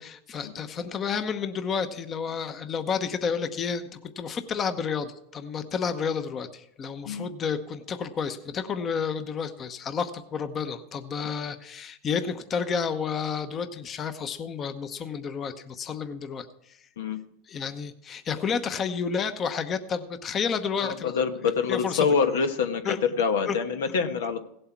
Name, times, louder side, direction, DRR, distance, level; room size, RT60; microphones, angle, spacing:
voice 1, 0.0-16.5 17.5-21.1 21.7-22.1 22.8-23.0 23.4-23.6, left 6 dB, 30° left, 9 dB, 0.9 m, -30 dB
voice 2, 20.8-24.4, left 5 dB, 85° left, 8 dB, 1.2 m, -26 dB
16.5 x 7.9 x 4.6 m, 0.75 s
supercardioid pair, 120°, 0 cm